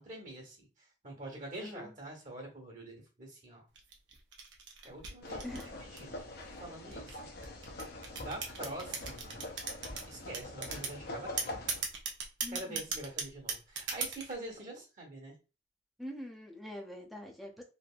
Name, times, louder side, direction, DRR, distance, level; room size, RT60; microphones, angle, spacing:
voice 1, 0.0-3.7 4.8-5.5 5.8-7.2 8.2-9.4 10.1-11.5 12.5-15.3, right 1 dB, 40° right, 0 dB, 1.2 m, -45 dB
voice 2, 1.6-1.9 5.4-5.7 12.4-12.8 16.0-17.6, left 1 dB, ahead, 0 dB, 0.6 m, -44 dB
sound 1, 3.8-6.2 6.9-10.0 10.3-11.0 11.4-14.3, right 5 dB, 70° right, 0.8 m, -37 dB
sound 2, 5.2-11.8, left 2 dB, 55° left, 0.6 m, -44 dB
3.4 x 2.6 x 2.4 m, 0.32 s
head